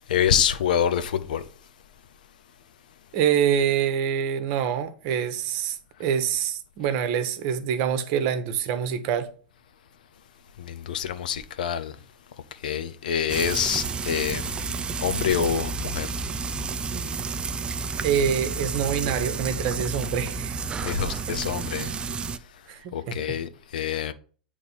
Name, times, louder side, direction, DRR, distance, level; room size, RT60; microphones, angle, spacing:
voice 1, 0.1-1.4 10.6-11.9 12.6-14.7 15.0-16.1 20.8-21.9 22.9-24.1, left 8 dB, 65° left, 0.7 m, -26 dB
voice 2, 3.1-9.3 18.0-20.6 21.3-21.4 22.7-23.3, right 8 dB, 45° right, 1.0 m, -26 dB
Frying (food), 13.3-22.4, right 4 dB, 20° right, 0.5 m, -31 dB
9.3 x 3.3 x 5.3 m
figure-of-eight pair, 95°, 5 cm